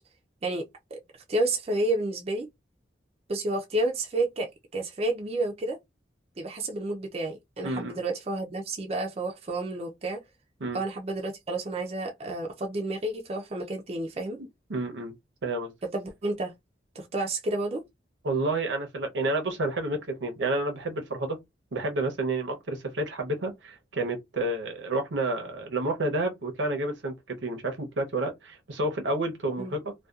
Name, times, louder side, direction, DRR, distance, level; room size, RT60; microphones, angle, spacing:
voice 1, 0.4-1.0 1.3-2.5 3.3-5.8 6.4-10.2 10.7-14.4 15.9-16.5 17.0-17.8 29.6-29.7, right 2 dB, 35° right, 0.4 m, -30 dB
voice 2, 7.6-8.0 10.6-10.8 14.4-15.1 15.4-15.7 18.2-21.4 21.7-29.9, right 2 dB, 80° right, 0.7 m, -30 dB
2.6 x 2.2 x 2.3 m
head